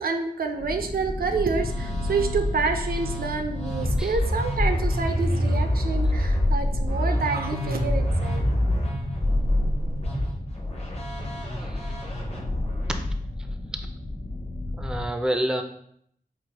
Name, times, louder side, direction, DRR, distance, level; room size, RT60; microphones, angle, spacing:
voice 1, 0.0-8.4, right 4 dB, 80° right, 6 dB, 0.4 m, -28 dB
sound 1, 0.6-15.0, left 1 dB, 75° left, 0.9 m, -33 dB
Musical instrument, 1.2-13.0, left 1 dB, 45° left, 0.8 m, -27 dB
voice 2, 11.6-12.0 12.9-13.0 13.4-13.6 14.8-15.6, right 1 dB, 5° right, 5 dB, 0.3 m, -29 dB
4.7 x 2.1 x 2.8 m, 0.68 s
wide cardioid pair, 75°, 15 cm